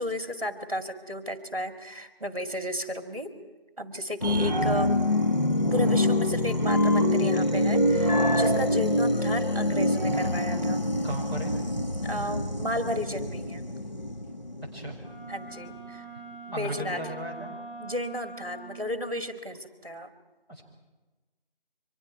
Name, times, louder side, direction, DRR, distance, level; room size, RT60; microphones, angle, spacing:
voice 1, 0.0-3.3 3.8-5.0 5.7-10.8 12.0-13.6 15.3-16.0 16.3-17.0 17.8-20.1, left 1 dB, 35° right, 7 dB, 2.1 m, -33 dB
sound 1, 4.2-15.2 15.7-15.8, left 1 dB, 45° left, 1.2 m, -25 dB
voice 2, 11.0-11.5 14.7-15.0 16.5-17.6 20.5-20.6, right 1 dB, 25° left, -7 dB, 5.1 m, -36 dB
Wind instrument woodwind instrument, 15.0-19.0, right 3 dB, 5° right, 7.3 m, -43 dB
30.0 x 24.5 x 4.8 m, 1.2 s
figure-of-eight pair, 180°, 30 cm